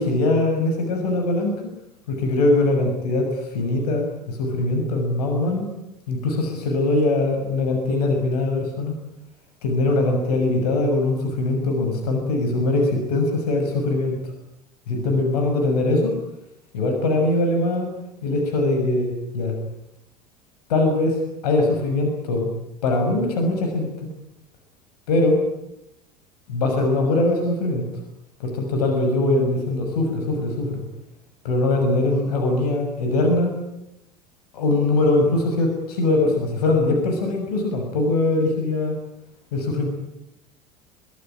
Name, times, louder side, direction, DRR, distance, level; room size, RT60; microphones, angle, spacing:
voice 1, 0.0-1.6 2.1-5.7 6.1-8.9 9.6-14.2 14.9-16.2 16.7-17.9 18.2-19.5 20.7-22.5 22.8-24.1 25.1-25.4 26.5-27.8 28.4-30.8 31.4-33.6 34.5-39.0 39.5-39.9, left 2 dB, 75° left, 3 dB, 6.3 m, -22 dB
23.5 x 20.5 x 10.0 m, 0.84 s
hypercardioid pair, 75°, 20 cm